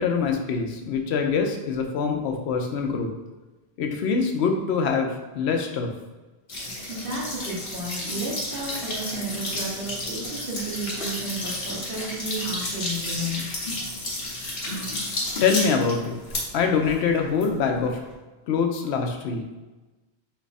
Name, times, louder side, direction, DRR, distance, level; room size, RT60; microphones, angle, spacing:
voice 1, 0.0-3.1 3.8-5.9 15.4-16.2 16.5-18.0 18.5-19.5, left 5 dB, 90° left, 3 dB, 0.9 m, -24 dB
sound 1, 6.5-18.1, left 1 dB, 60° left, 1.1 m, -32 dB
voice 2, 6.9-13.5, right 1 dB, 60° right, -6 dB, 1.2 m, -32 dB
4.1 x 2.4 x 4.0 m, 1.2 s
omnidirectional pair, 1.1 m